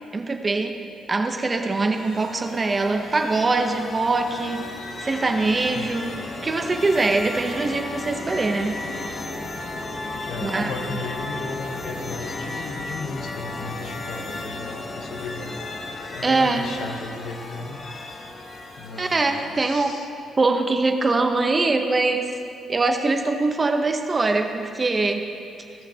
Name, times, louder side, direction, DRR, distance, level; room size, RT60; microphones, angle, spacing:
voice 1, 0.1-0.8 1.1-4.7 5.0-6.1 6.4-8.8 10.4-11.0 16.2-16.7 19.0-19.9 20.4-22.3 22.7-25.3, right 3 dB, 30° right, 5 dB, 0.8 m, -23 dB
sound 1, 1.6-19.8, left 2 dB, 45° left, 1.0 m, -35 dB
voice 2, 10.3-15.5 16.1-17.8 18.8-20.1, left 3 dB, 70° left, 4 dB, 0.9 m, -35 dB
17.0 x 6.4 x 2.9 m, 2.4 s
cardioid pair, 90°, 0 cm